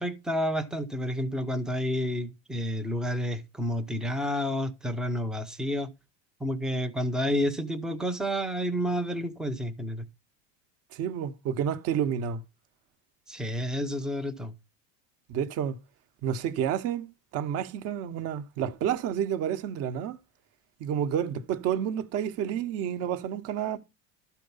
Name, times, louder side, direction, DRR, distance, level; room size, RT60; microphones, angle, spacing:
voice 1, 0.0-5.9 6.4-10.0 13.3-14.5, equal, ahead, 0.6 m, -30 dB
voice 2, 10.9-12.4 15.3-15.8 16.2-17.1 17.3-20.2 20.8-23.8, right 9 dB, 35° right, 1.0 m, -30 dB
13.0 x 4.6 x 5.4 m
cardioid pair, 170°, 41 cm